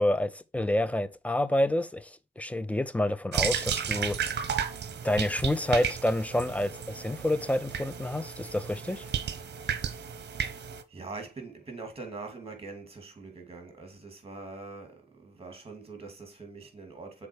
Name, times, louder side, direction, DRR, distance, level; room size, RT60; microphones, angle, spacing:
voice 1, 0.0-4.5 5.0-9.1, left 1 dB, 5° left, 0.5 m, -28 dB
sound 1, 3.3-10.8, right 7 dB, 60° right, 0.9 m, -33 dB
voice 2, 10.9-17.3, right 3 dB, 30° right, 2.6 m, -43 dB
6.7 x 4.2 x 4.6 m
cardioid pair, 105°, 20 cm